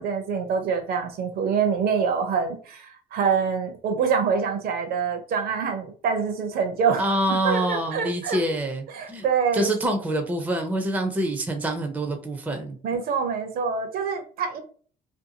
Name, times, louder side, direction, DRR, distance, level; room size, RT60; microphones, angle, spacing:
voice 1, 0.0-8.4 8.9-9.7 12.8-14.6, right 6 dB, 60° right, 6 dB, 0.6 m, -25 dB
voice 2, 7.0-9.2 9.5-12.8, right 1 dB, 10° right, 5 dB, 0.5 m, -26 dB
2.6 x 2.3 x 2.7 m, 0.43 s
cardioid pair, 110°, 17 cm